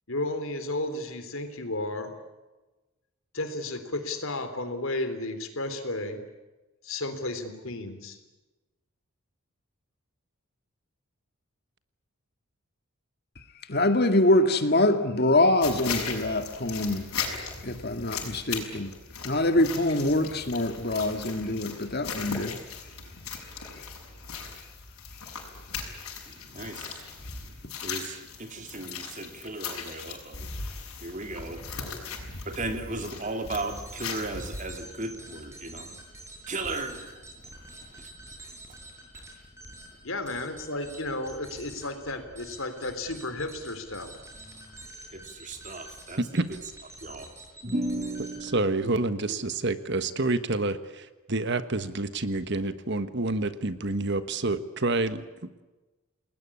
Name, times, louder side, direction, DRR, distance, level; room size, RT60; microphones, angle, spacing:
voice 1, 0.1-2.1 3.3-6.2 6.8-8.2 40.0-44.1, left 2 dB, 65° left, 3.5 m, -33 dB
voice 2, 13.7-17.1 17.6-18.9 19.2-22.6, left 1 dB, 45° left, 1.9 m, -24 dB
sound 1, 15.6-34.8, left 5 dB, 85° left, 6.2 m, -38 dB
voice 3, 26.3-31.6 32.5-36.0 36.5-37.2 37.9-38.1 44.4-44.8 45.1-46.2 47.0-47.3 47.6-48.9 49.3-49.4, right 2 dB, 35° right, 2.7 m, -36 dB
sound 2, 33.2-48.7, right 1 dB, 15° right, 6.8 m, -47 dB
voice 4, 46.2-46.6 48.4-55.2, right 2 dB, 50° right, 1.4 m, -28 dB
29.5 x 20.0 x 8.6 m
head